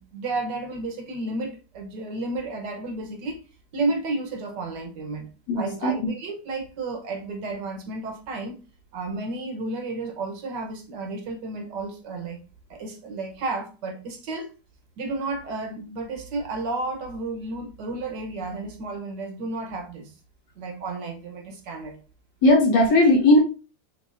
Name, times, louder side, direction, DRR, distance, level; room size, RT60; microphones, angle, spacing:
voice 1, 0.0-3.4 3.7-5.3 5.6-8.6 8.9-12.4 12.7-14.5 15.0-20.1 20.6-22.0, right 3 dB, 70° right, 1.6 m, -32 dB
voice 2, 5.5-6.0 22.4-23.4, left 2 dB, 80° left, 2.3 m, -17 dB
6.2 x 3.4 x 2.5 m
omnidirectional pair, 2.0 m